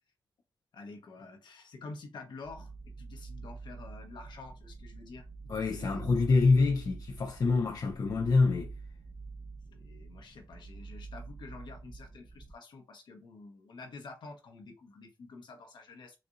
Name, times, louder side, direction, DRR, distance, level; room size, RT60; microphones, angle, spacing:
voice 1, 0.7-2.7 3.0-5.3 5.7-6.0 9.7-16.2, left 3 dB, 70° left, 0.9 m, -48 dB
sound 1, 2.4-12.5, right 4 dB, 25° right, 0.7 m, -46 dB
voice 2, 5.5-8.7, left 3 dB, 50° left, 0.5 m, -26 dB
4.1 x 2.6 x 2.5 m
cardioid pair, 60°, 8 cm